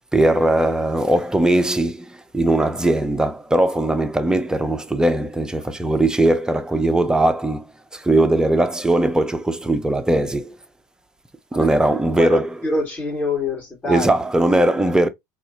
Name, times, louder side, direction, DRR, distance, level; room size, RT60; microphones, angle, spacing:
voice 1, 0.1-7.7 7.9-10.6 11.5-12.5 13.9-15.1, right 1 dB, 5° right, 0.6 m, -19 dB
voice 2, 12.2-14.1, left 2 dB, 20° left, 2.5 m, -25 dB
4.1 x 2.4 x 2.6 m
hypercardioid pair, 90°, 10 cm